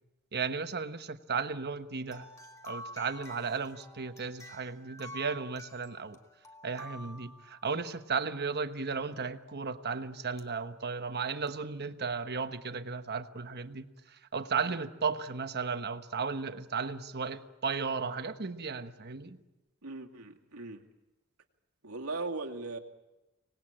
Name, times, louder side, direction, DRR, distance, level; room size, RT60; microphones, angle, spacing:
voice 1, 0.3-2.3 2.6-6.2 6.6-19.4, right 5 dB, 50° right, 9 dB, 1.2 m, -35 dB
sound 1, 2.1-8.0 10.4-10.5 11.5-11.6, equal, 15° left, 1.8 m, -49 dB
voice 2, 19.8-20.8 21.8-22.8, right 3 dB, 80° right, 1 dB, 2.2 m, -38 dB
25.0 x 19.0 x 8.9 m, 1.1 s
head